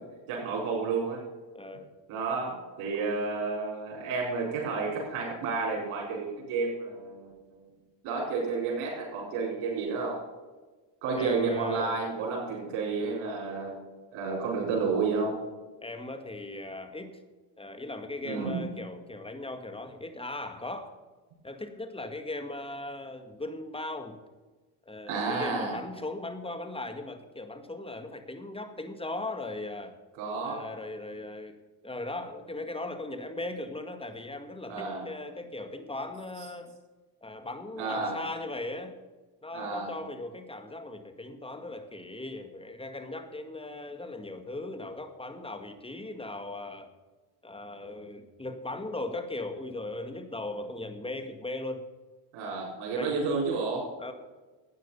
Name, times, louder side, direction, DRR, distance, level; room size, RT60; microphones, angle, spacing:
voice 1, 0.3-1.2 2.1-7.6 8.0-10.2 11.0-13.8 14.1-15.4 18.2-18.6 25.1-25.8 30.2-30.6 34.7-35.0 37.8-38.1 39.5-39.9 52.3-53.9, right 4 dB, 80° right, -3 dB, 4.5 m, -31 dB
voice 2, 1.5-1.9 11.2-12.0 15.8-17.1 17.6-20.9 21.4-24.2 24.9-29.9 30.4-31.6 31.8-36.8 37.2-39.0 39.4-46.9 47.4-51.8 53.0-53.2 54.0-54.1, left 2 dB, 10° left, 8 dB, 1.9 m, -38 dB
13.0 x 9.1 x 5.5 m, 1.3 s
supercardioid pair, 75°, 48 cm